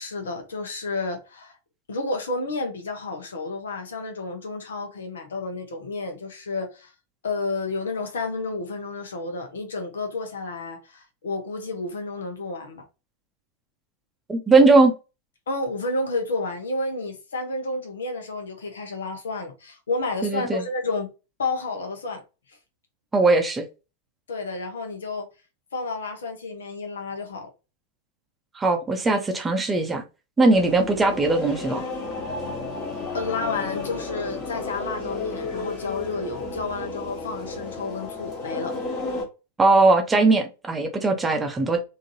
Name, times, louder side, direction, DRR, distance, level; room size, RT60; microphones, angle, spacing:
voice 1, 0.0-1.6 1.9-6.9 7.2-12.8 15.5-21.1 21.4-22.2 22.5-22.6 24.3-25.2 25.7-27.5 33.1-38.7, left 3 dB, 65° left, 1.0 m, -31 dB
voice 2, 14.3-14.9 20.2-20.6 23.1-23.7 28.5-30.0 30.4-31.9 39.6-41.8, right 3 dB, 15° right, 0.7 m, -19 dB
sound 1, 30.5-39.2, left 3 dB, 30° left, 1.5 m, -33 dB
3.7 x 2.7 x 2.7 m
figure-of-eight pair, 90°, 0 cm